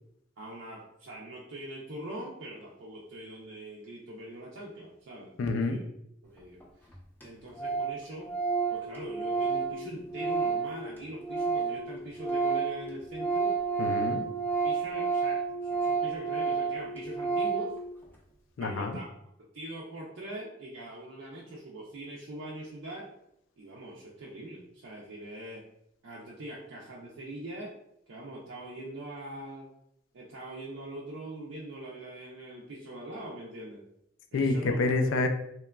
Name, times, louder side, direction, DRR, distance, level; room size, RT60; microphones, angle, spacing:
voice 1, 0.4-5.9 6.2-6.6 7.2-8.3 8.7-13.5 14.6-17.8 18.6-19.1 19.5-23.1 23.6-25.6 26.0-27.7 28.1-29.7 30.1-33.8 34.3-34.8, right 1 dB, 85° right, -4 dB, 0.5 m, -42 dB
voice 2, 5.4-5.8 13.8-14.2 18.6-19.0 34.3-35.3, left 3 dB, 85° left, 6 dB, 0.3 m, -27 dB
Organ, 6.6-6.7 6.9-7.0 7.2-7.3 7.6-7.9 8.2-11.8 12.1-17.7, right 5 dB, 10° left, 0.4 m, -30 dB
2.9 x 2.2 x 2.2 m, 0.77 s
head